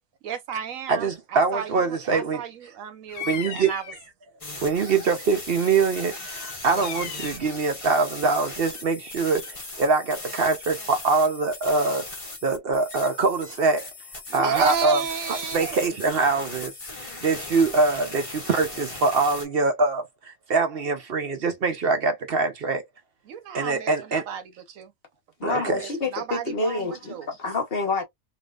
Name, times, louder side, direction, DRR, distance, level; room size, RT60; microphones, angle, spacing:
voice 1, 0.2-4.0 14.3-15.9 23.3-24.9 25.5-27.3, right 8 dB, 90° right, 1.2 m, -33 dB
voice 2, 0.9-2.4 3.2-3.7 4.6-12.1 12.4-13.9 14.3-15.0 15.5-16.7 17.2-22.8 23.5-24.2 25.4-25.8, right 4 dB, 55° right, 0.8 m, -23 dB
Bird vocalization bird call bird song, 3.1-4.1 5.9-7.5, left 8 dB, 75° left, 1.1 m, -37 dB
sound 1, 4.4-19.5, left 2 dB, 25° left, 1.1 m, -38 dB
voice 3, 25.4-28.0, left 3 dB, 50° left, 1.2 m, -28 dB
3.3 x 2.5 x 2.4 m
omnidirectional pair, 1.3 m